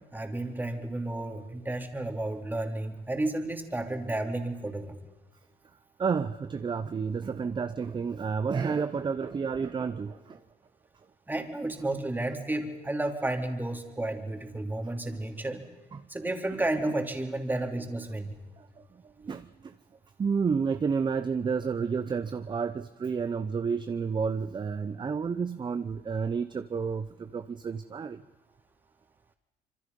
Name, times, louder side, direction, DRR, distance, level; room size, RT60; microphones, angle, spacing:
voice 1, 0.1-5.0 11.3-15.6 16.1-18.3, right 2 dB, 10° right, 4 dB, 2.9 m, -32 dB
voice 2, 6.0-10.4 14.8-14.9 15.9-16.0 19.2-19.7 20.2-28.2, right 5 dB, 25° right, 11 dB, 0.8 m, -30 dB
26.0 x 24.5 x 5.4 m, 1.2 s
cardioid pair, 110°, 17 cm